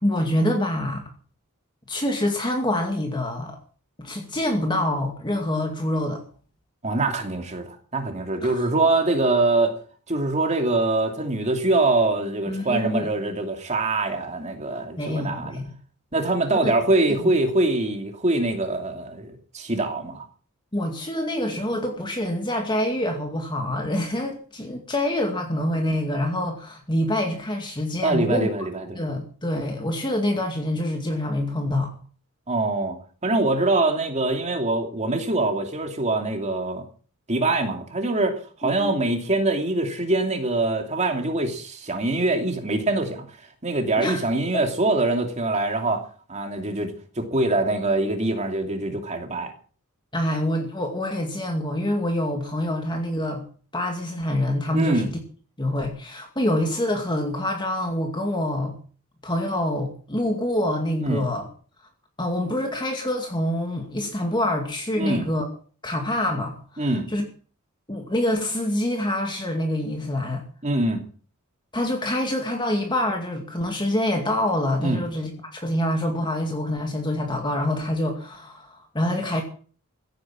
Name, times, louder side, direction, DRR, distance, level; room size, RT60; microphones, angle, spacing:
voice 1, 0.0-1.1 1.9-3.6 4.0-6.2 8.4-8.7 12.5-13.1 15.0-15.7 16.6-16.7 17.2-17.3 20.7-28.5 29.0-31.9 38.6-39.0 44.0-44.3 44.5-44.6 50.1-53.4 53.7-55.1 55.6-58.7 59.2-61.5 62.2-65.5 65.8-67.2 67.9-70.4 71.7-79.4, left 1 dB, 20° left, 2.2 m, -26 dB
voice 2, 6.8-9.8 10.1-15.6 16.1-20.2 28.0-29.0 32.5-33.0 33.2-36.8 37.3-43.2 43.6-46.0 46.3-49.5 54.7-55.1 61.0-61.3 65.0-65.3 66.8-67.1 70.6-71.0 74.8-75.0, right 2 dB, 30° right, 2.7 m, -24 dB
16.0 x 9.5 x 7.5 m
head